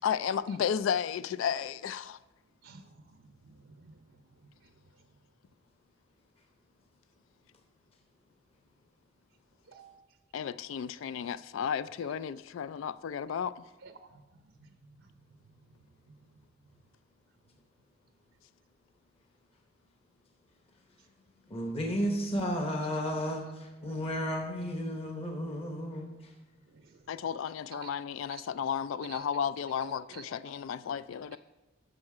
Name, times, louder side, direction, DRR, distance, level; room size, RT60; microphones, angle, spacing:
voice 1, 0.0-2.2 10.3-13.6 27.1-31.4, left 8 dB, 70° left, 0.3 m, -33 dB
voice 2, 2.6-3.2 3.4-4.2 9.7-10.0 13.8-14.2 14.6-14.7 15.0-15.1 26.7-27.0 27.7-27.9 28.3-28.4 29.1-29.2 29.6-30.5, right 5 dB, 70° right, 0.6 m, -51 dB
voice 3, 21.5-26.3, equal, 30° left, 1.0 m, -33 dB
10.5 x 6.4 x 4.8 m
head